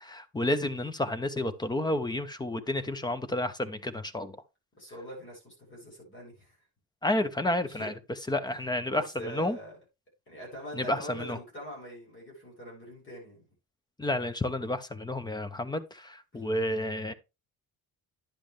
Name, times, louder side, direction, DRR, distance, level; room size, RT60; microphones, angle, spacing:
voice 1, 0.0-4.3 7.0-7.9 8.3-9.6 10.7-11.4 14.0-17.1, left 1 dB, 10° left, 0.7 m, -30 dB
voice 2, 4.8-6.5 7.7-7.9 8.5-9.8 10.3-13.4 16.3-16.4, equal, 30° left, 6.7 m, -44 dB
10.5 x 7.6 x 3.2 m
cardioid pair, 160°, 37 cm